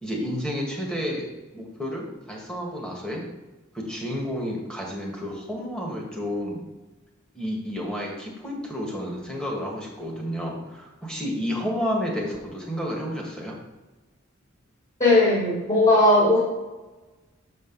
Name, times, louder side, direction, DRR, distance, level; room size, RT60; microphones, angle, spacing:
voice 1, 0.0-1.2 1.5-3.2 3.7-6.6 7.3-13.5, equal, 5° left, -2 dB, 1.7 m, -31 dB
voice 2, 15.0-16.4, left 2 dB, 30° left, -7 dB, 2.4 m, -18 dB
6.7 x 6.5 x 4.0 m, 1.1 s
head